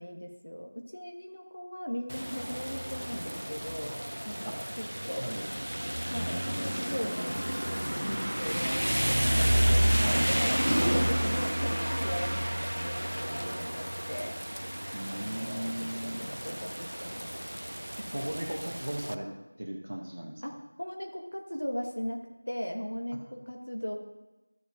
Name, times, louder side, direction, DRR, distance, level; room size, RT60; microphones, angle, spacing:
voice 1, 0.0-5.3 6.0-14.3 15.1-17.3 20.4-23.9, equal, 55° left, 2 dB, 1.3 m, -39 dB
Rain, 2.1-19.1, equal, 80° right, 0.4 m, -30 dB
voice 2, 5.1-5.5 10.0-10.3 14.9-16.3 18.0-19.3 19.6-20.4, right 1 dB, 30° right, 0 dB, 0.9 m, -37 dB
Wind instrument woodwind instrument, 5.7-9.7, equal, 15° left, 1.7 m, -49 dB
13.0 x 7.9 x 2.5 m, 1.1 s
figure-of-eight pair, 180°, 0 cm